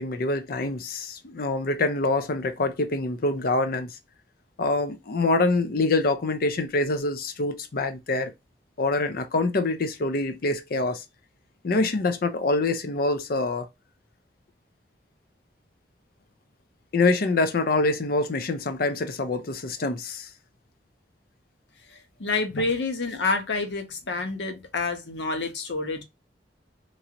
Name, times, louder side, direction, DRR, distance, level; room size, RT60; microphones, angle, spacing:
voice 1, 0.0-4.0 4.6-8.3 8.8-11.0 11.6-13.7 16.9-20.3 22.5-22.6, left 2 dB, 60° left, 0.6 m, -25 dB
voice 2, 21.9-26.0, left 3 dB, 85° left, 0.8 m, -28 dB
3.1 x 2.9 x 2.4 m
head